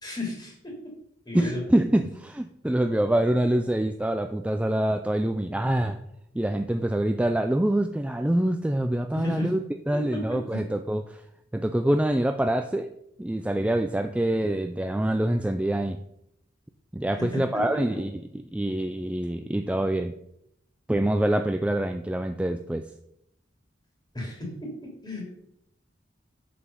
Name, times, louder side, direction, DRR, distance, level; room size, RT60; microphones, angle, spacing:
voice 1, 0.0-0.7 1.2-1.6 9.1-9.5 9.9-10.6 17.2-18.0 24.1-25.2, left 2 dB, 20° left, -2 dB, 3.0 m, -34 dB
voice 2, 1.3-6.0 6.3-9.6 9.9-11.2 11.5-12.9 13.2-16.0 16.9-18.1 18.5-20.1 20.9-22.9, right 1 dB, 5° right, 6 dB, 0.3 m, -25 dB
7.0 x 6.9 x 5.4 m, 0.77 s
head